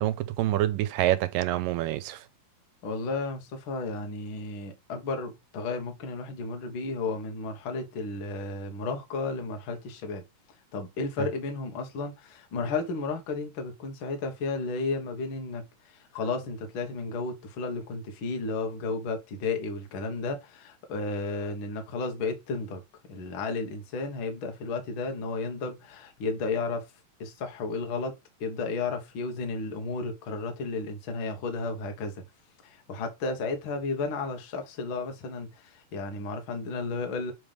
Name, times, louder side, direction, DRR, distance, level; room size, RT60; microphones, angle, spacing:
voice 1, 0.0-2.2 11.2-11.3, right 14 dB, 85° right, 2.3 m, -27 dB
voice 2, 2.8-10.2 10.7-22.8 23.1-26.8 27.2-28.1 28.4-32.2 32.6-37.3, left 3 dB, 50° left, 1.6 m, -33 dB
7.7 x 3.5 x 5.1 m
omnidirectional pair, 3.9 m